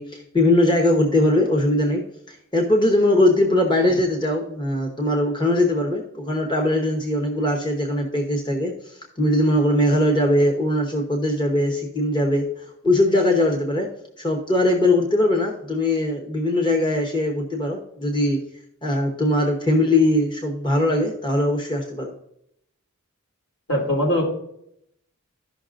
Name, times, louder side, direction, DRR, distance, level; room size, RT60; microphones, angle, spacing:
voice 1, 0.0-2.0 2.3-12.4 12.8-13.9 14.2-18.4 18.8-22.1, left 1 dB, 20° left, 1 dB, 0.9 m, -21 dB
voice 2, 23.7-24.2, left 1 dB, 75° left, -1 dB, 3.1 m, -21 dB
14.0 x 5.7 x 2.5 m, 0.74 s
head